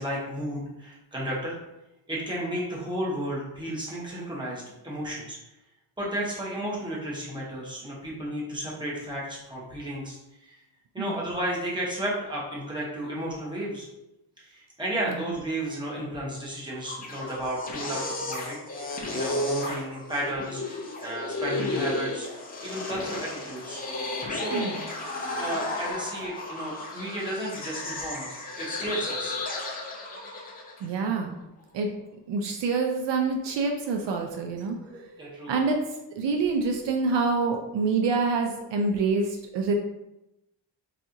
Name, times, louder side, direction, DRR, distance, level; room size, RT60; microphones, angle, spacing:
voice 1, 0.0-1.6 2.1-5.4 6.0-10.5 10.9-13.9 14.4-23.8 24.3-24.8 25.4-29.4 34.8-35.5, right 1 dB, 10° right, -5 dB, 0.9 m, -33 dB
sound 1, 16.7-30.8, left 2 dB, 20° left, 0.4 m, -33 dB
voice 2, 30.8-31.4 31.7-31.9 32.3-34.8 35.5-35.8 36.1-39.7, right 4 dB, 70° right, 3 dB, 0.5 m, -26 dB
4.2 x 2.4 x 2.6 m, 0.90 s
cardioid pair, 140°, 45 cm